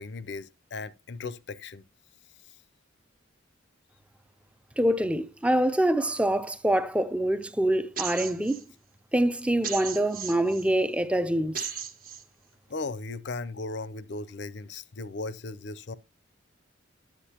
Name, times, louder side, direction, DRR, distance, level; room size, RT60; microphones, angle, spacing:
voice 1, 0.0-1.8 12.7-15.9, left 3 dB, 60° left, 0.6 m, -37 dB
voice 2, 4.8-8.6 9.1-11.7, right 1 dB, 5° right, 0.5 m, -25 dB
sound 1, 8.0-8.6 9.6-10.6 11.5-12.2, right 8 dB, 45° right, 1.3 m, -36 dB
10.5 x 8.2 x 2.9 m
head